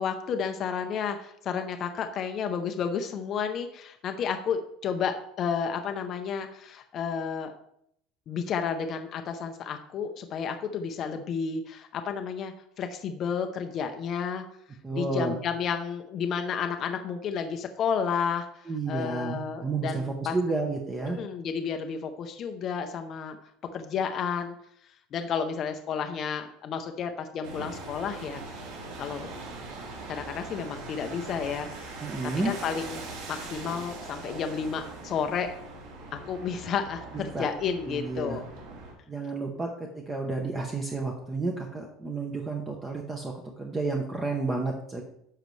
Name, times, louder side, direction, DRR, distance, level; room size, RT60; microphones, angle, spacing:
voice 1, 0.0-7.5 8.3-14.4 14.9-20.4 21.1-23.4 23.7-24.6 25.1-28.4 29.0-29.3 30.1-32.0 32.4-35.5 36.1-38.4, left 6 dB, 30° left, 6 dB, 0.5 m, -31 dB
voice 2, 14.8-15.4 18.7-21.2 32.0-32.5 37.3-37.5 37.9-38.4 39.1-39.7 40.1-45.0, right 3 dB, 10° right, 1 dB, 0.7 m, -31 dB
sound 1, 27.4-38.9, right 3 dB, 75° right, 3.5 m, -41 dB
10.0 x 6.5 x 3.1 m, 0.73 s
cardioid pair, 180°, 0 cm